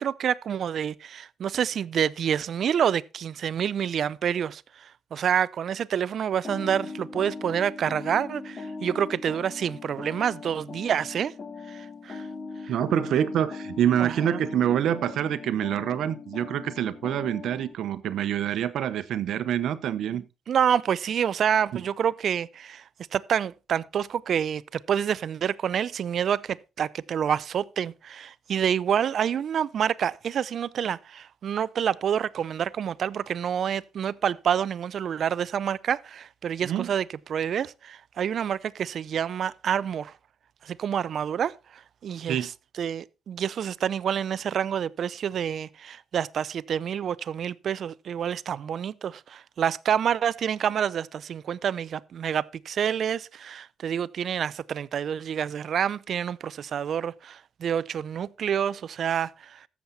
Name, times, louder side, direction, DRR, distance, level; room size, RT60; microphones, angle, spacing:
voice 1, 0.0-11.3 11.7-12.3 12.6-12.7 14.0-14.4 20.1-22.8 23.1-37.0 37.3-40.1 40.6-42.5 42.8-59.7, right 8 dB, 60° right, 0.5 m, -28 dB
sound 1, 6.4-17.7, left 4 dB, 35° left, 1.8 m, -39 dB
voice 2, 12.7-20.2 21.7-21.8 36.6-36.9 42.3-42.5, right 10 dB, 75° right, 0.9 m, -26 dB
14.0 x 7.3 x 4.1 m
cardioid pair, 110°, 0 cm